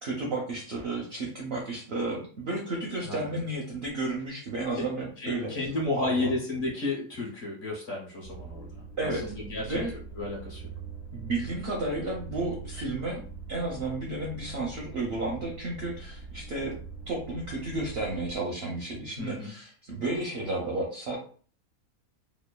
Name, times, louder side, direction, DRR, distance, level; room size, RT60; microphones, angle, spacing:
voice 1, 0.0-5.5 5.9-6.3 9.0-9.2 9.6-9.9 11.1-13.2 13.5-16.7 17.1-21.2, right 2 dB, 65° right, -2 dB, 0.6 m, -32 dB
voice 2, 5.2-8.7 9.1-9.8 10.2-10.6 19.2-19.5, left 2 dB, 50° left, -2 dB, 1.0 m, -32 dB
sound 1, 8.2-18.4, right 5 dB, 80° left, 1.2 m, -43 dB
2.9 x 2.0 x 2.2 m, 0.43 s
omnidirectional pair, 1.5 m